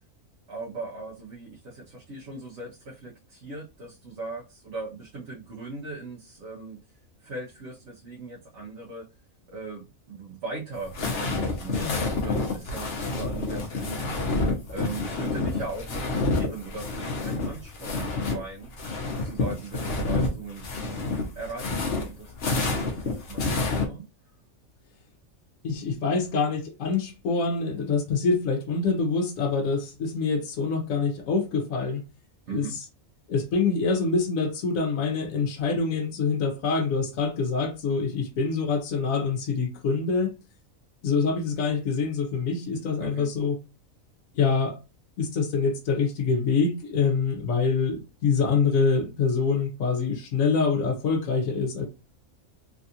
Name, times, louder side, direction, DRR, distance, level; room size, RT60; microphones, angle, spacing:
voice 1, 0.5-6.8 7.2-9.1 9.5-18.7 19.1-21.0 21.3-24.1 32.5-32.8 43.0-43.3, right 3 dB, 60° right, 1.2 m, -39 dB
sound 1, 10.7-18.4 18.7-23.9, left 3 dB, 50° left, 0.9 m, -28 dB
voice 2, 25.6-32.0 32.5-32.7 33.3-40.3 41.0-43.6 44.3-44.8 45.2-51.9, left 4 dB, 75° left, 1.2 m, -25 dB
3.4 x 2.4 x 2.7 m
omnidirectional pair, 1.5 m